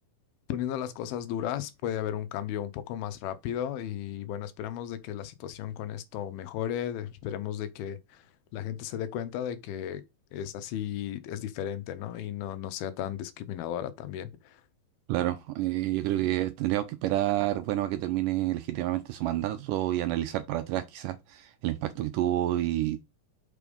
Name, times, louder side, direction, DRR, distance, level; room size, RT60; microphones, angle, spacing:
voice 1, 0.5-8.2 8.5-10.0 10.3-14.6, left 10 dB, 85° left, 2.7 m, -34 dB
voice 2, 15.1-23.0, right 14 dB, 80° right, 2.0 m, -29 dB
5.9 x 4.9 x 5.2 m
omnidirectional pair, 4.3 m